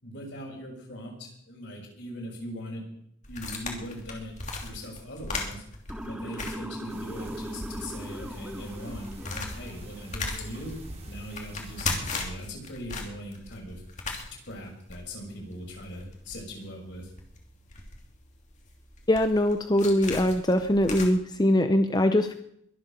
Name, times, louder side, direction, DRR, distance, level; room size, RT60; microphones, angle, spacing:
voice 1, 0.0-2.8 3.3-4.3 4.6-5.6 6.0-10.8 11.1-13.8 14.5-17.1, equal, 60° left, 0 dB, 5.9 m, -40 dB
sound 1, 3.2-7.4 7.7-7.8 8.3-21.1, left 3 dB, 40° left, 2.9 m, -38 dB
Motor vehicle (road) / Siren, 5.9-10.0, equal, 5° right, 1.2 m, -39 dB
sound 2, 6.9-12.0, right 1 dB, 30° right, 3.0 m, -44 dB
voice 2, 19.1-22.3, left 1 dB, 20° left, 8 dB, 0.7 m, -22 dB
22.5 x 7.9 x 6.9 m, 0.72 s
head